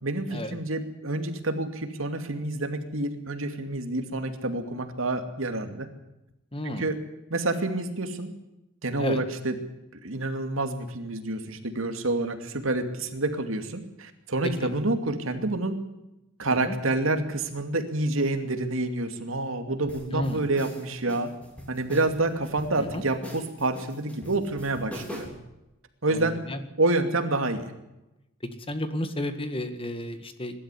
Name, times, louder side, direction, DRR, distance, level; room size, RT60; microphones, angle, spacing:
voice 1, 0.0-5.9 6.6-7.0 7.3-8.3 8.8-9.6 10.0-15.8 16.4-21.3 21.7-25.3 26.0-26.4 26.8-27.7, right 2 dB, 85° right, 7 dB, 2.6 m, -28 dB
voice 2, 6.5-6.8 9.0-9.2 14.6-14.7 16.5-16.8 20.1-20.4 22.8-23.0 26.1-26.6 28.7-30.6, left 1 dB, 25° left, 9 dB, 1.8 m, -32 dB
sound 1, 19.9-25.5, equal, 5° left, 3.9 m, -42 dB
22.5 x 12.5 x 9.9 m, 0.94 s
head